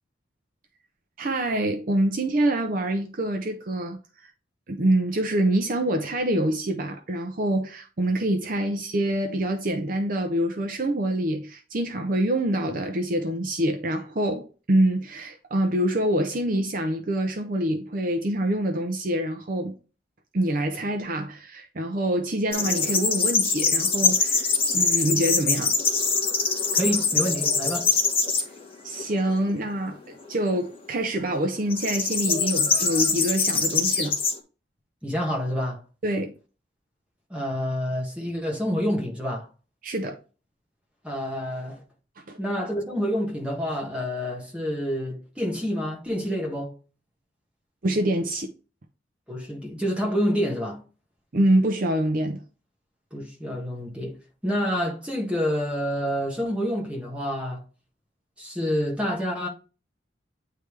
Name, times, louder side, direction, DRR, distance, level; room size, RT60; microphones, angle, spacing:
voice 1, 1.2-4.3 4.7-19.7 20.3-25.7 28.8-34.2 36.0-36.3 39.8-40.2 42.3-42.4 47.8-48.5 51.3-52.4, right 1 dB, 45° right, 0.6 m, -26 dB
sound 1, 22.5-28.4 29.0-29.5 31.7-34.3, left 5 dB, 30° left, 1.3 m, -23 dB
voice 2, 26.8-27.9 35.0-35.8 37.3-39.5 41.0-41.8 42.4-46.7 49.3-50.8 53.1-54.2 54.4-57.6 58.4-59.5, equal, 5° right, 1.5 m, -28 dB
9.2 x 3.3 x 3.2 m
head